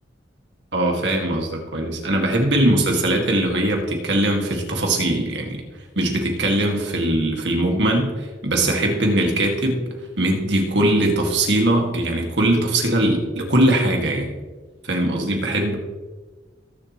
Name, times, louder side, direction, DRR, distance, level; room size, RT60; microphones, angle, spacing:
voice 1, 0.7-5.6 6.0-9.9 10.2-14.3 14.8-15.7, right 1 dB, 80° right, 1 dB, 2.1 m, -21 dB
19.5 x 7.4 x 3.1 m, 1.3 s
head